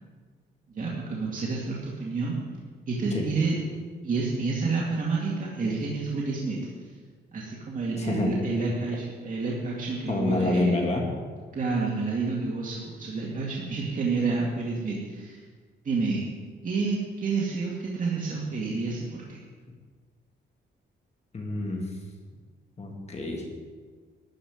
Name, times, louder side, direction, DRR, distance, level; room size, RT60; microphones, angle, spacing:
voice 1, 0.7-2.4 2.9-3.6 4.0-6.6 7.3-10.8 11.5-15.4 15.8-16.3 16.6-19.4, right 4 dB, 45° right, -4 dB, 2.3 m, -29 dB
voice 2, 8.0-8.3 10.1-11.1 21.3-21.9 22.8-23.4, left 2 dB, 35° left, 0 dB, 2.3 m, -27 dB
13.0 x 5.8 x 9.5 m, 1.5 s
cardioid pair, 130°, 20 cm